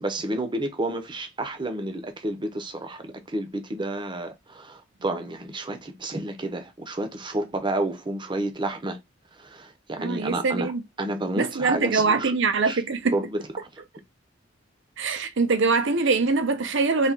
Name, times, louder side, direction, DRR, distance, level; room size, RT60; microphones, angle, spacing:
voice 1, 0.0-9.0 9.4-10.7 11.0-12.3 12.6-12.8 13.1-13.4, right 2 dB, 25° right, 0.8 m, -30 dB
voice 2, 10.0-10.8 11.4-13.2 15.0-17.1, right 4 dB, 65° right, 0.7 m, -23 dB
4.2 x 2.8 x 3.5 m
head